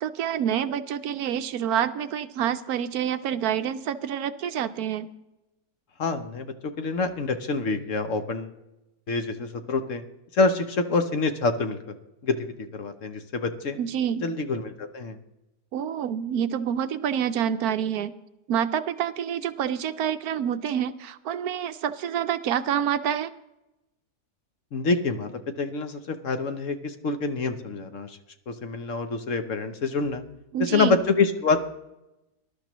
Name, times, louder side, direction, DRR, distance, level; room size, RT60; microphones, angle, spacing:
voice 1, 0.0-5.1 13.8-14.2 15.7-18.1 18.5-23.3 30.5-31.0, right 9 dB, 75° right, 11 dB, 1.1 m, -27 dB
voice 2, 6.0-8.5 9.1-10.0 10.3-11.8 12.2-13.8 14.2-15.2 24.7-25.3 25.6-28.2 28.5-30.2 30.6-31.6, left 3 dB, 55° left, 8 dB, 1.2 m, -26 dB
19.5 x 12.0 x 3.0 m, 0.93 s
omnidirectional pair, 1.7 m